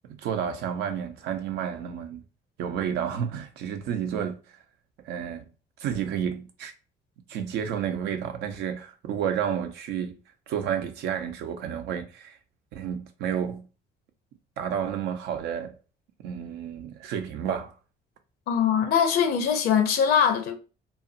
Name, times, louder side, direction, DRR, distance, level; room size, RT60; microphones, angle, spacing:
voice 1, 0.1-2.2 2.6-4.3 5.0-5.5 5.8-6.7 7.3-10.1 10.5-12.4 12.7-13.7 14.6-15.7 16.2-17.7, right 8 dB, 80° right, 0.6 m, -31 dB
voice 2, 18.5-20.5, left 7 dB, 65° left, 0.6 m, -22 dB
2.8 x 2.4 x 2.5 m
cardioid pair, 110°, 17 cm